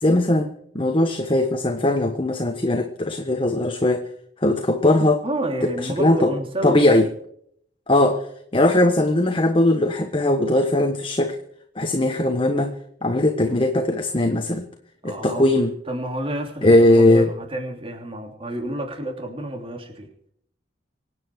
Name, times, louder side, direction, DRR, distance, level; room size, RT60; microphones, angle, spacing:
voice 1, 0.0-4.1 4.4-5.2 5.6-5.7 6.0-6.3 6.6-7.1 7.9-8.3 8.5-11.4 11.8-12.7 13.0-14.6 15.0-15.7 16.6-17.3, left 1 dB, 30° left, 5 dB, 1.3 m, -19 dB
voice 2, 5.2-6.9 15.0-15.5 15.9-20.1, right 1 dB, 30° right, 3 dB, 3.1 m, -29 dB
25.5 x 9.2 x 4.8 m, 0.67 s
head